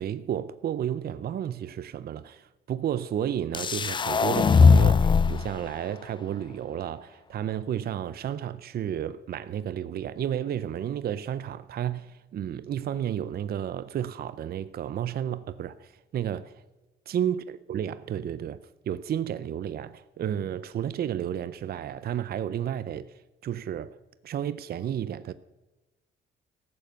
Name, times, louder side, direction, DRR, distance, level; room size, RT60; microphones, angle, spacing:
voice 1, 0.0-16.6 17.1-24.0 24.2-25.3, right 10 dB, 50° right, 0.5 m, -32 dB
sound 1, 3.5-5.5, left 5 dB, 25° left, 0.3 m, -19 dB
13.5 x 7.4 x 6.8 m
cardioid pair, 90°, 20 cm